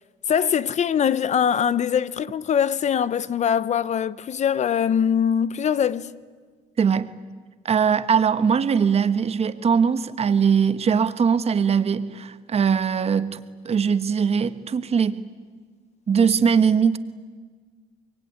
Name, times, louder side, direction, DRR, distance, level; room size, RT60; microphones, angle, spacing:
voice 1, 0.3-6.1, left 8 dB, 45° left, 0.7 m, -22 dB
voice 2, 6.8-7.1 7.6-13.4 13.6-15.2 16.1-17.0, right 6 dB, 40° right, 1.3 m, -21 dB
24.5 x 23.0 x 9.7 m
cardioid pair, 110°, 17 cm